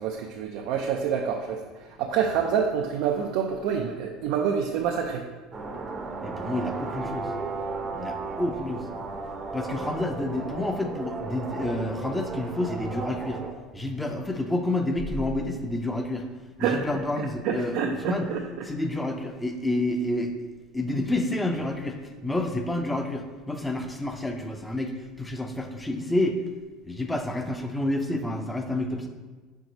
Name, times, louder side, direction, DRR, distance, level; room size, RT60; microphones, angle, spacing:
voice 1, 0.0-5.2 16.6-16.8 17.4-18.6, right 7 dB, 70° right, 2 dB, 0.5 m, -27 dB
sound 1, 5.5-13.5, right 3 dB, 30° right, 0.7 m, -35 dB
voice 2, 6.2-7.3 7.9-8.9 9.5-13.4 13.7-16.3 16.6-18.3 18.6-20.3 20.7-26.4 26.9-29.1, left 1 dB, 10° left, 4 dB, 0.6 m, -29 dB
4.6 x 3.8 x 5.3 m, 1.3 s
supercardioid pair, 125°, 0 cm